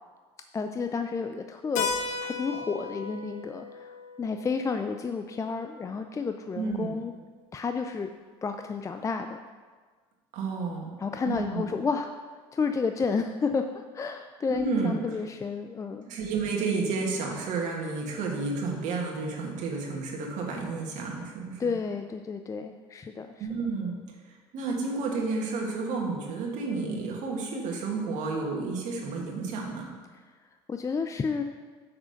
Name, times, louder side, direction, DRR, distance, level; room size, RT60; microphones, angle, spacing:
voice 1, 0.5-1.9 2.2-3.9 4.2-7.1 7.5-8.1 8.4-9.4 11.0-12.1 12.5-16.1 21.6-23.5 30.7-31.4, left 5 dB, 20° left, 6 dB, 0.4 m, -31 dB
Keyboard (musical), 1.8-6.2, left 5 dB, 65° left, 1.0 m, -36 dB
voice 2, 6.5-6.9 10.3-10.9 11.3-11.6 14.5-15.0 16.1-21.7 23.4-23.9 24.5-29.9, right 4 dB, 60° right, -1 dB, 1.8 m, -31 dB
6.3 x 4.9 x 6.5 m, 1.5 s
hypercardioid pair, 80°, 14 cm